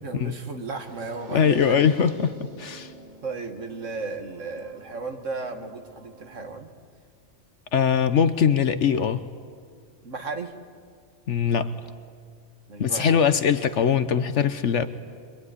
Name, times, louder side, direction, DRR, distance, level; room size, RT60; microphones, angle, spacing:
voice 1, 0.0-2.0 3.2-6.7 10.0-10.6 12.7-13.2, right 3 dB, 80° right, 5 dB, 2.2 m, -35 dB
sound 1, 0.6-6.6, right 2 dB, 35° right, 2.7 m, -48 dB
voice 2, 1.3-2.9 7.7-9.2 11.3-11.7 12.8-14.9, left 7 dB, 70° left, 11 dB, 1.2 m, -21 dB
25.0 x 23.5 x 9.7 m, 2.1 s
omnidirectional pair, 1.3 m